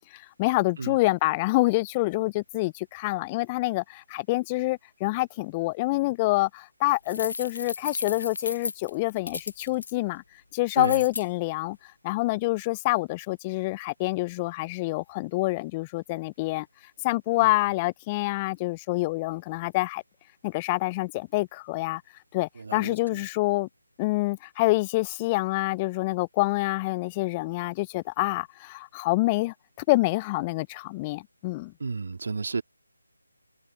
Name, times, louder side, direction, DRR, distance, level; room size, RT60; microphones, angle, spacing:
voice 1, 0.1-10.2 10.5-11.8 12.0-16.7 17.0-20.0 20.4-22.0 22.3-23.7 24.0-29.5 29.9-31.7, left 21 dB, 15° left, 0.5 m, -27 dB
sound 1, 7.1-9.9 10.8-11.3, left 4 dB, 55° left, 0.9 m, -34 dB
voice 2, 22.6-23.3 31.8-32.6, right 4 dB, 50° right, 2.2 m, -32 dB
figure-of-eight pair, 155°, 0 cm